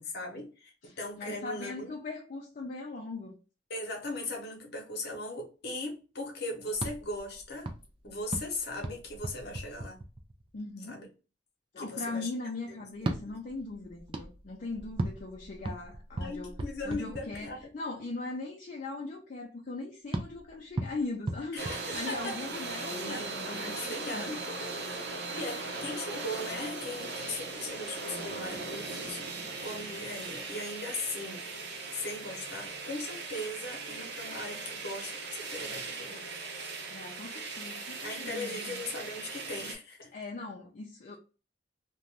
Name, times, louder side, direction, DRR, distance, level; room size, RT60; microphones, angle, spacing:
voice 1, 0.0-1.9 3.7-7.7 8.0-10.0 10.9-11.1 11.8-12.3 12.7-13.3 16.2-17.7 21.5-22.4 22.9-24.4 25.3-29.3 29.6-31.5 31.9-36.3 38.0-40.1, left 2 dB, 60° left, 0.9 m, -39 dB
voice 2, 0.8-3.4 10.5-11.0 11.7-16.6 16.8-25.7 36.9-38.8 40.1-41.2, left 3 dB, 45° left, 0.4 m, -40 dB
sound 1, 6.7-10.6 12.9-17.8 20.1-22.5, right 2 dB, 30° right, 0.4 m, -38 dB
sound 2, 21.6-39.7, right 3 dB, 60° right, 0.7 m, -39 dB
2.6 x 2.2 x 3.2 m
head